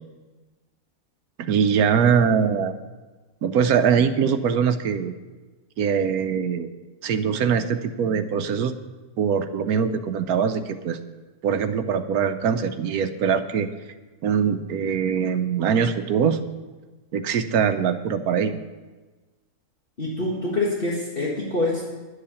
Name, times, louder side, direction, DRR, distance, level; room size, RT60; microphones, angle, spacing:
voice 1, 1.4-2.7 3.4-5.1 5.8-6.7 7.0-8.7 9.2-11.0 11.4-13.7 14.2-16.4 17.1-18.6, right 7 dB, 80° right, 9 dB, 1.3 m, -22 dB
voice 2, 20.0-21.9, left 2 dB, 40° left, -4 dB, 1.9 m, -25 dB
11.0 x 8.1 x 7.0 m, 1.2 s
omnidirectional pair, 1.6 m